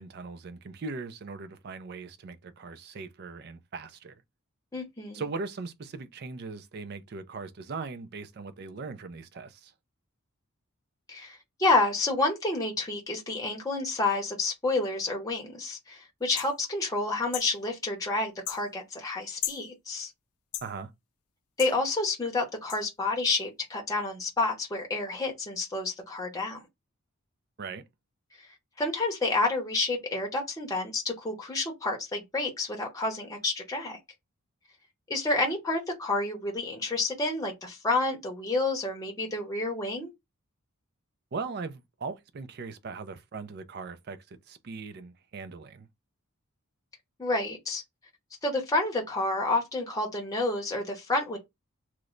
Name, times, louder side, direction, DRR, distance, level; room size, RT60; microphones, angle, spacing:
voice 1, 0.0-4.2 5.1-9.7 20.6-20.9 27.6-27.8 41.3-45.9, right 4 dB, 45° right, 0.4 m, -39 dB
voice 2, 4.7-5.2 11.1-20.1 21.6-26.6 28.8-34.0 35.1-40.1 47.2-47.8 48.4-51.4, left 2 dB, 15° left, 0.7 m, -29 dB
sound 1, 16.4-16.5 17.3-17.5 18.5-18.6 19.4-19.6 20.5-20.7 21.6-21.8 22.7-22.8, left 12 dB, 85° left, 0.5 m, -35 dB
3.0 x 2.1 x 3.7 m
head